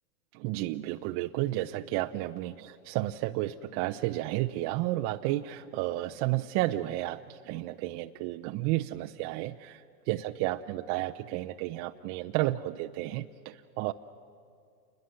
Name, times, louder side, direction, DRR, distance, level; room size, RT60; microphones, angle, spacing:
voice 1, 0.3-13.9, right 16 dB, 35° right, 5 dB, 0.5 m, -32 dB
28.5 x 21.5 x 7.6 m, 2.5 s
hypercardioid pair, 125°, 45 cm